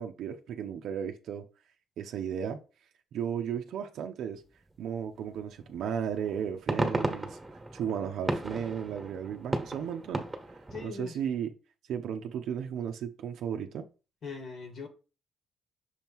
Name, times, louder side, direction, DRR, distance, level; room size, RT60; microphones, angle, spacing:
voice 1, 0.0-1.4 2.0-2.6 3.1-4.4 4.8-7.4 7.7-10.3 10.8-11.5 11.9-13.9, right 8 dB, 75° right, 0.6 m, -34 dB
sound 1, 5.6-5.8 6.3-10.9, right 2 dB, 15° right, 1.2 m, -34 dB
voice 2, 10.7-11.2 14.2-14.9, left 5 dB, 55° left, 1.4 m, -40 dB
6.3 x 3.0 x 5.4 m
cardioid pair, 90°, 0 cm